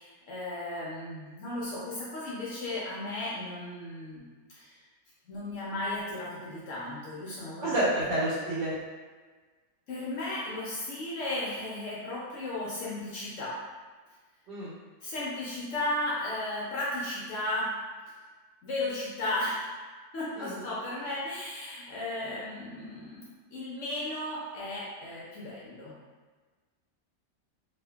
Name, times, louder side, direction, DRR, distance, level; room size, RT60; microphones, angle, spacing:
voice 1, 0.0-4.3 4.5-4.8 5.3-7.7 9.9-13.5 15.0-17.7 18.6-19.6 20.1-26.0, left 1 dB, 70° left, -7 dB, 0.7 m, -35 dB
voice 2, 7.6-8.7 14.5-14.7 20.4-20.6, right 1 dB, 85° right, -9 dB, 1.3 m, -29 dB
2.7 x 2.4 x 2.2 m, 1.4 s
omnidirectional pair, 1.9 m